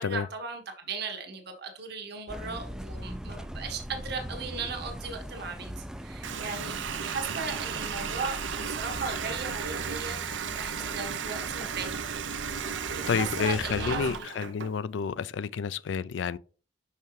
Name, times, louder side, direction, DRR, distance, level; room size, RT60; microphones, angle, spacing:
voice 1, 0.0-12.0 12.9-14.3, right 4 dB, 60° right, 1.4 m, -37 dB
sound 1, 2.3-14.2, equal, 5° right, 0.3 m, -41 dB
Water tap faucet, 6.2-14.7, right 7 dB, 80° right, 0.6 m, -35 dB
voice 2, 13.1-16.4, left 6 dB, 75° left, 0.4 m, -30 dB
5.8 x 5.6 x 3.2 m
head